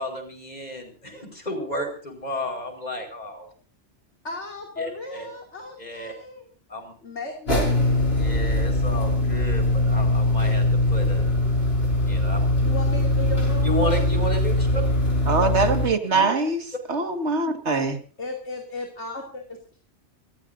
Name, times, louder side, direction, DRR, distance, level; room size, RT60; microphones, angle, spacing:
voice 1, 0.0-3.5 4.8-5.3 5.8-6.1 6.7-6.9 8.1-11.3 12.0-12.4 13.6-14.8 16.1-16.3, equal, 35° left, 4 dB, 5.2 m, -32 dB
voice 2, 4.2-6.5 7.0-8.0 12.6-14.2 18.2-19.6, left 1 dB, 80° left, 1 dB, 3.1 m, -35 dB
sound 1, 7.5-15.9, left 1 dB, 60° left, 5.8 m, -22 dB
voice 3, 15.3-16.6 16.9-18.0, right 3 dB, 75° right, 7 dB, 2.2 m, -23 dB
27.0 x 15.0 x 2.7 m, 0.41 s
omnidirectional pair, 1.2 m